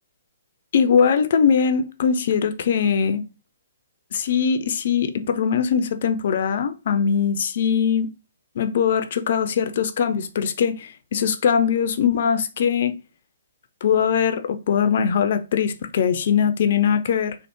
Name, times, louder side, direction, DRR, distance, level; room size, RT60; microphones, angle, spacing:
voice 1, 0.7-3.2 4.1-8.1 8.6-13.0 13.8-17.4, left 7 dB, 55° left, 0.4 m, -21 dB
3.3 x 2.1 x 2.9 m
figure-of-eight pair, 130°, 0 cm